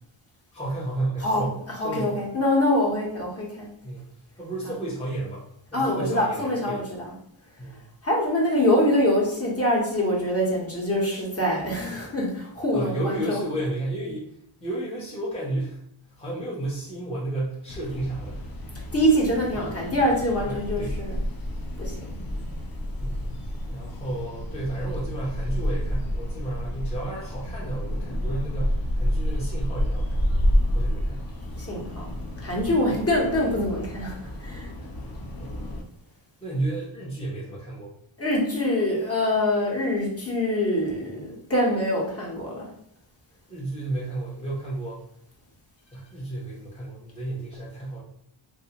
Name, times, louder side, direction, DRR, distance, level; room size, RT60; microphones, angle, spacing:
voice 1, 0.5-2.2 3.8-4.1 4.4-6.8 7.6-7.9 12.7-15.8 16.2-18.5 20.5-21.0 23.0-30.3 30.7-31.3 32.9-33.0 35.4-35.8 36.4-37.9 43.5-45.0 45.9-48.0, right 2 dB, 15° left, -7 dB, 0.8 m, -32 dB
voice 2, 1.8-3.7 4.6-4.8 5.7-7.1 8.0-13.4 18.7-21.2 21.8-22.0 31.6-34.7 38.2-42.7, left 1 dB, 30° left, -3 dB, 1.1 m, -24 dB
sound 1, 17.7-35.8, equal, 45° left, 0.7 m, -29 dB
3.3 x 2.6 x 2.8 m, 0.70 s
wide cardioid pair, 100°, 50 cm